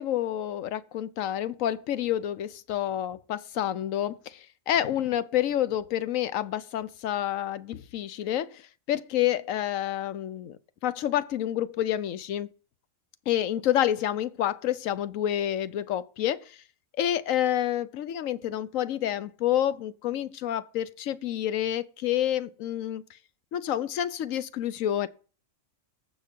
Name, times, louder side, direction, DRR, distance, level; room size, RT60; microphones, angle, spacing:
voice 1, 0.0-4.2 4.7-8.5 8.9-10.6 10.8-12.5 13.3-16.5 17.0-23.0 23.5-25.1, left 11 dB, 90° left, 1.1 m, -28 dB
15.0 x 5.9 x 5.3 m
omnidirectional pair, 1.3 m